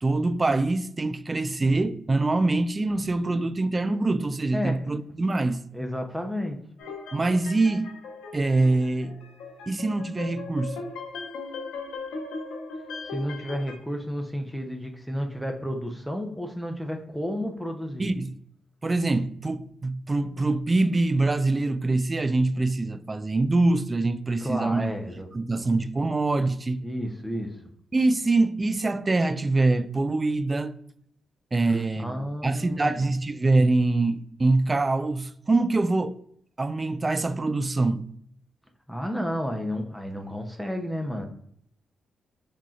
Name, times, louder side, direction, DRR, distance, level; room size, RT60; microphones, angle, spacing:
voice 1, 0.0-5.6 7.1-7.9 8.3-9.2 9.7-10.8 18.0-18.3 18.8-24.9 25.3-26.8 27.9-30.7 31.5-36.2 36.6-38.1, right 2 dB, 30° right, 0.3 m, -24 dB
voice 2, 5.7-6.6 13.1-18.1 24.4-25.3 26.8-27.6 32.0-33.0 38.9-41.3, equal, ahead, 0.7 m, -31 dB
sound 1, 6.8-13.8, left 4 dB, 80° left, 0.8 m, -38 dB
4.3 x 3.7 x 2.4 m
supercardioid pair, 50°, 0 cm